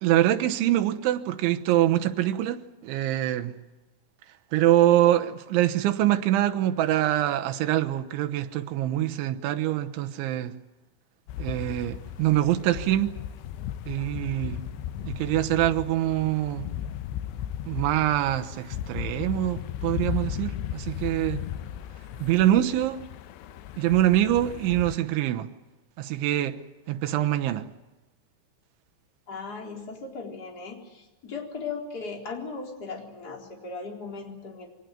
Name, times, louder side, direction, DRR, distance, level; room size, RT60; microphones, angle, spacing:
voice 1, 0.0-3.5 4.5-10.6 11.4-13.2 13.9-14.6 15.0-16.7 17.7-21.4 22.2-23.0 23.8-25.5 26.0-26.6 26.9-27.7, right 13 dB, 85° right, 3.5 m, -24 dB
sound 1, 11.3-25.0, left 10 dB, 75° left, 3.0 m, -36 dB
voice 2, 29.3-34.7, left 4 dB, 20° left, 4.1 m, -37 dB
25.0 x 18.5 x 9.3 m
omnidirectional pair, 5.3 m